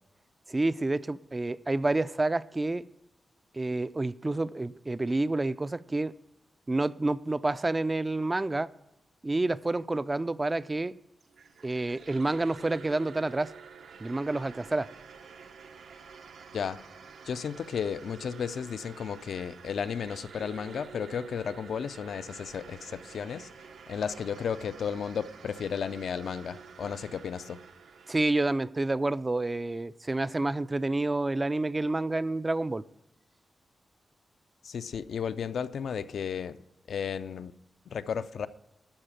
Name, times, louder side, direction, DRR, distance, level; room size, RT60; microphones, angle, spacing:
voice 1, 0.5-2.8 3.5-6.1 6.7-8.7 9.2-10.9 11.6-13.5 14.0-14.9 28.1-32.8, right 2 dB, 20° right, 0.4 m, -29 dB
sound 1, 11.2-28.2, right 6 dB, 85° right, 1.1 m, -49 dB
voice 2, 17.2-23.5 23.9-27.6 34.6-36.6 36.9-37.5 37.9-38.5, left 7 dB, 75° left, 0.5 m, -33 dB
13.0 x 4.9 x 9.0 m
wide cardioid pair, 115°, 0 cm